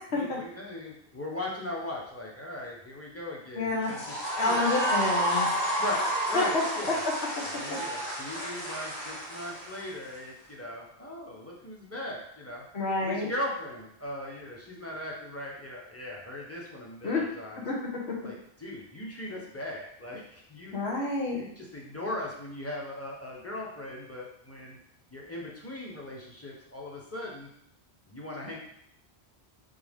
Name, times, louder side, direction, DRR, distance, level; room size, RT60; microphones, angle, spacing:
voice 1, 0.1-4.7 5.8-7.0 7.4-12.6 13.0-17.6 18.2-20.7 21.3-24.8 25.1-27.5 28.1-28.6, left 1 dB, 15° left, -3 dB, 0.8 m, -39 dB
voice 2, 3.5-3.9 4.4-6.1 6.3-6.4 12.7-13.3 17.0-17.2 17.6-17.7 18.1-18.2 20.7-21.4, left 3 dB, 85° left, -3 dB, 1.3 m, -29 dB
sound 1, 3.8-10.2, equal, 70° left, 1.6 m, -31 dB
5.3 x 2.8 x 3.6 m, 0.71 s
omnidirectional pair, 1.1 m